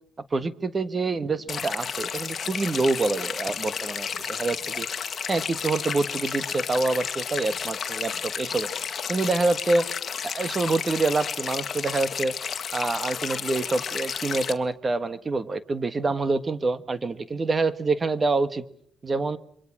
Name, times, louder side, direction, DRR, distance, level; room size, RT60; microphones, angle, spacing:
voice 1, 0.3-4.9 5.3-8.7 9.1-9.9 10.2-12.4 12.7-18.6 19.0-19.4, right 3 dB, 30° right, 13 dB, 1.5 m, -26 dB
sound 1, 1.3-9.3, right 3 dB, 55° right, 7.4 m, -57 dB
sound 2, 1.5-14.5, left 7 dB, 50° left, 1.8 m, -32 dB
sound 3, 9.8-10.0 10.7-10.9 12.8-13.0 13.3-13.6, left 1 dB, 5° left, 4.1 m, -41 dB
27.5 x 23.5 x 6.2 m, 0.63 s
cardioid pair, 90°, 0 cm